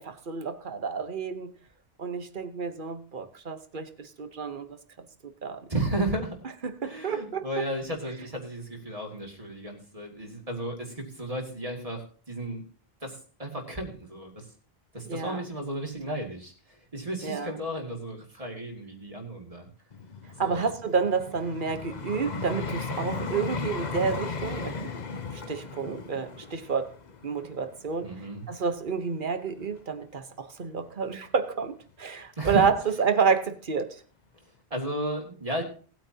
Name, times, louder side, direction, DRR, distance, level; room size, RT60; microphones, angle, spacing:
voice 1, 0.0-1.5 2.0-4.8 5.2-5.6 6.6-7.4 15.0-15.4 17.2-17.6 20.4-25.0 25.3-26.9 27.2-28.1 28.5-34.0, right 5 dB, 50° right, 1.2 m, -29 dB
voice 2, 5.7-6.4 6.8-12.6 13.0-14.5 14.9-19.7 20.4-20.7 28.0-28.4 32.4-32.7 34.7-35.6, right 1 dB, 35° right, 2.6 m, -34 dB
Vehicle, 19.9-29.0 29.6-29.8, left 4 dB, 45° left, 1.0 m, -36 dB
19.0 x 9.1 x 2.9 m
omnidirectional pair, 1.1 m